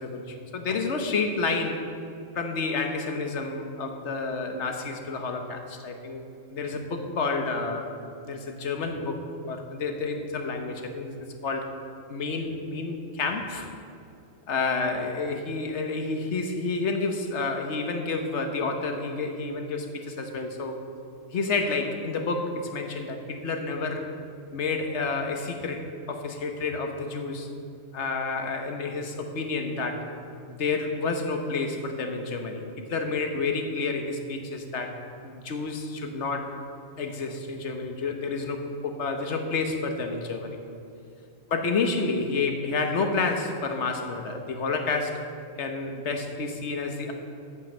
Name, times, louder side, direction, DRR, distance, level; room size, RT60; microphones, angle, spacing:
voice 1, 0.0-1.8 2.3-6.2 6.5-7.9 8.2-9.2 9.5-11.1 11.4-11.7 12.1-13.7 14.5-20.8 21.3-24.1 24.5-27.5 27.9-30.1 30.5-32.6 32.9-35.0 35.2-36.6 37.0-40.6 41.5-45.3 45.6-47.1, left 4 dB, 65° left, 4 dB, 1.3 m, -29 dB
9.2 x 8.1 x 6.4 m, 2.5 s
omnidirectional pair, 1.3 m